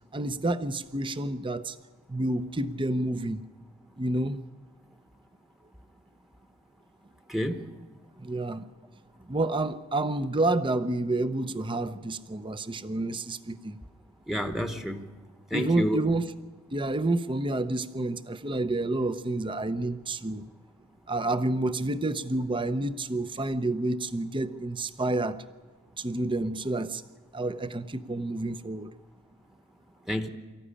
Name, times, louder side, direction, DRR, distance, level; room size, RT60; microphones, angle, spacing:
voice 1, 0.1-1.8 2.1-3.4 4.0-4.4 8.2-8.7 9.2-13.8 15.5-16.2 16.7-20.4 21.1-25.4 26.0-27.0 27.3-28.9, right 2 dB, 25° right, 13 dB, 0.7 m, -29 dB
voice 2, 7.3-7.6 14.3-15.0 15.5-16.0 30.1-30.3, equal, ahead, 7 dB, 1.1 m, -29 dB
24.0 x 14.5 x 10.0 m, 1.4 s
head